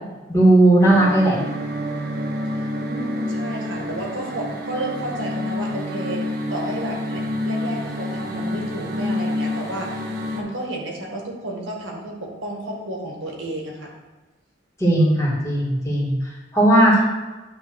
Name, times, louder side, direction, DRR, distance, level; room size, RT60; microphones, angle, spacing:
voice 1, 0.3-1.4 14.8-17.0, right 1 dB, 15° left, -5 dB, 2.0 m, -16 dB
sound 1, 0.8-10.4, left 1 dB, 55° right, 1.2 m, -28 dB
voice 2, 2.8-6.2 6.5-10.0 10.3-13.9, right 1 dB, 75° right, -1 dB, 1.7 m, -31 dB
9.7 x 3.3 x 6.3 m, 1.2 s
head